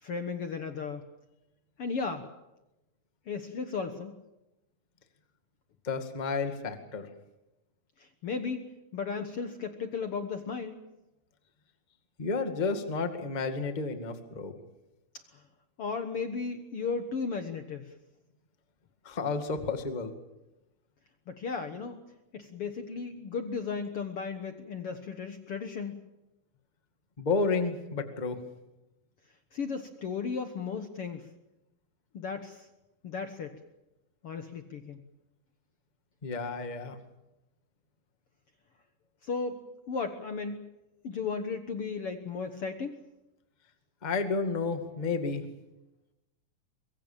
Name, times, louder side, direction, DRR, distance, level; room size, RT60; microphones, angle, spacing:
voice 1, 0.0-1.1 1.8-2.3 3.3-4.1 8.0-10.8 15.3-15.4 15.8-17.9 21.3-22.0 22.3-26.0 29.5-31.3 32.1-32.7 33.0-33.6 34.2-35.0 39.2-40.7 41.0-43.0, left 5 dB, 70° left, 7 dB, 1.3 m, -35 dB
voice 2, 5.8-7.1 12.2-14.6 19.0-20.1 27.2-28.4 36.2-37.0 44.0-45.4, left 4 dB, 25° left, 7 dB, 0.9 m, -31 dB
24.5 x 22.5 x 7.4 m, 0.95 s
omnidirectional pair, 4.6 m